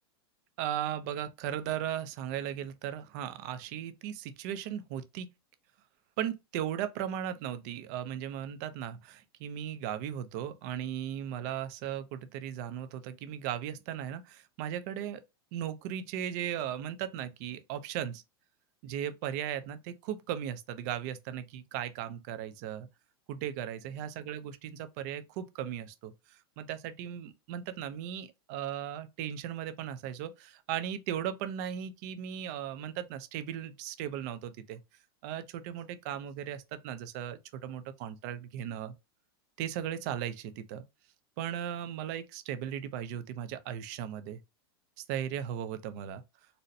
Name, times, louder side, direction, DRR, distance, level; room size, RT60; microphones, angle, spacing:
voice 1, 0.6-5.3 6.2-15.2 15.5-18.2 18.8-22.9 23.3-34.8 35.2-38.9 39.6-40.8 41.4-44.4 45.0-46.2, right 10 dB, 40° right, 0.4 m, -37 dB
4.0 x 2.1 x 2.6 m
supercardioid pair, 160°, 13 cm